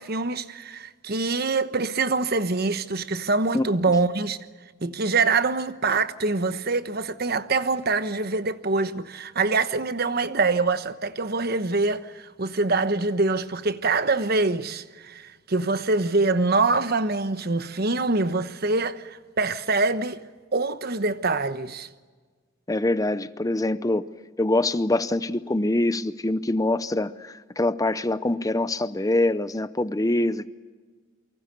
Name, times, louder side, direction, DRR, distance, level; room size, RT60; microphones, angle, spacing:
voice 1, 0.0-4.4 4.8-20.2 20.5-21.9, right 3 dB, 50° right, 1.1 m, -24 dB
voice 2, 22.7-24.1 24.4-30.5, left 2 dB, 15° left, 0.7 m, -24 dB
28.5 x 24.5 x 6.9 m
head